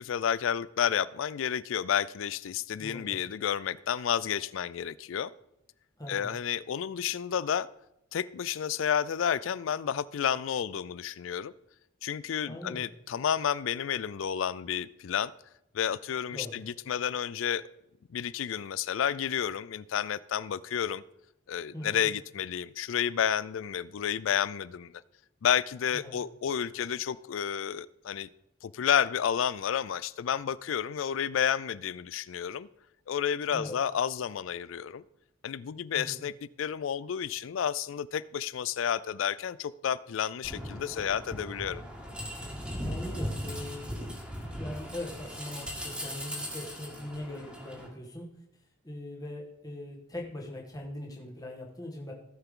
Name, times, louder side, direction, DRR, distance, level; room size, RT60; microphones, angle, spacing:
voice 1, 0.0-5.3 6.1-7.7 8.1-11.5 12.0-15.3 15.7-17.6 18.1-21.0 21.5-25.0 25.4-28.3 28.6-32.7 33.1-35.0 35.4-36.3 36.6-41.8, left 8 dB, 75° left, 19 dB, 0.4 m, -31 dB
voice 2, 2.8-3.2 6.0-6.3 12.4-12.8 16.3-16.6 21.7-22.1 25.9-26.2 33.5-33.8 35.9-36.2 42.8-43.9 44.6-48.3 48.8-52.1, left 1 dB, 20° left, -1 dB, 1.6 m, -41 dB
sound 1, 40.4-47.9, equal, 5° right, 2.0 m, -38 dB
17.0 x 5.7 x 3.7 m, 0.83 s
head